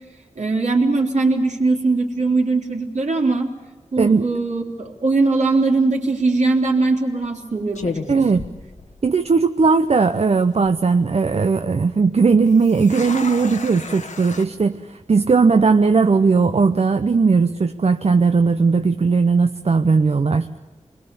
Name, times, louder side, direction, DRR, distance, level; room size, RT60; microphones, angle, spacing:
voice 1, 0.4-3.5 3.9-8.4, right 3 dB, 75° right, 1 dB, 3.4 m, -20 dB
sound 1, 6.2-6.5 7.2-7.4 7.7-9.3 9.6-9.7 10.3-10.7 12.4-14.5, left 4 dB, 75° left, 1.4 m, -33 dB
voice 2, 8.1-8.4 9.0-20.5, right 4 dB, 60° right, 8 dB, 0.8 m, -17 dB
27.0 x 21.5 x 7.0 m, 1.2 s
wide cardioid pair, 85°, 12 cm